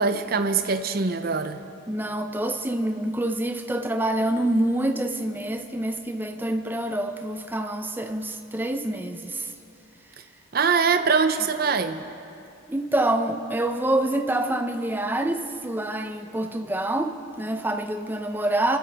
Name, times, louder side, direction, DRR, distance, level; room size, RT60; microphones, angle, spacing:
voice 1, 0.0-1.6 10.5-12.0, right 5 dB, 45° right, 9 dB, 0.6 m, -23 dB
voice 2, 1.9-9.5 12.7-18.8, right 1 dB, 10° right, 7 dB, 0.5 m, -26 dB
26.5 x 12.5 x 3.4 m, 2.7 s
head